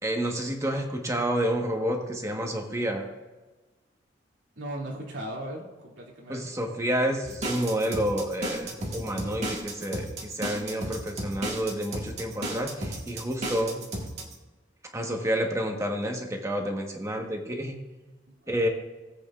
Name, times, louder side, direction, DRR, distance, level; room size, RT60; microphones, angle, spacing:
voice 1, 0.0-3.1 6.3-13.8 14.9-17.8 18.5-18.7, equal, 15° right, 2 dB, 1.3 m, -29 dB
voice 2, 4.6-6.5 18.4-18.6, right 1 dB, 80° right, -2 dB, 2.6 m, -37 dB
sound 1, 7.2-14.3, right 1 dB, 40° right, 1.6 m, -34 dB
19.5 x 8.2 x 2.5 m, 1.2 s
head